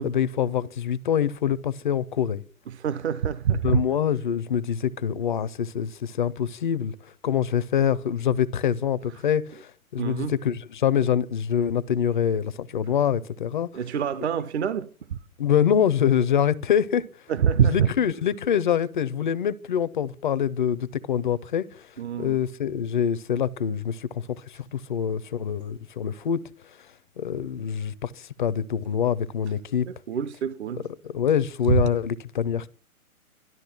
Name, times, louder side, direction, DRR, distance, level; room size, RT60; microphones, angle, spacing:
voice 1, 0.0-2.4 3.6-6.9 7.2-13.8 15.4-17.0 17.6-21.9 22.2-26.4 27.2-29.9 30.8-32.7, left 8 dB, 35° left, 0.5 m, -25 dB
voice 2, 2.7-3.8 10.0-10.3 13.7-15.2 17.3-17.9 22.0-22.4 30.1-30.8 31.7-31.8, right 8 dB, 50° right, 0.8 m, -25 dB
13.0 x 12.5 x 5.9 m
figure-of-eight pair, 130°, 43 cm